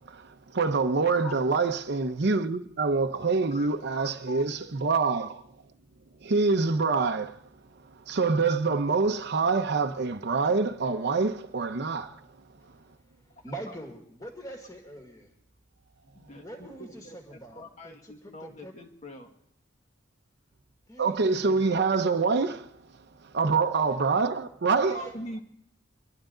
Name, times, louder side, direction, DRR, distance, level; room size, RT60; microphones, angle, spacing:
voice 1, 0.0-5.4 6.2-7.4 7.7-12.2 21.0-22.8 23.2-25.0, right 4 dB, 60° right, 0.7 m, -26 dB
voice 2, 1.0-1.3 3.5-4.4 16.1-19.3 24.9-25.4, left 1 dB, 35° left, 1.8 m, -43 dB
voice 3, 13.3-15.3 16.4-18.7 20.9-21.8 24.8-25.1, right 1 dB, 20° left, 2.1 m, -44 dB
25.0 x 11.5 x 3.9 m
head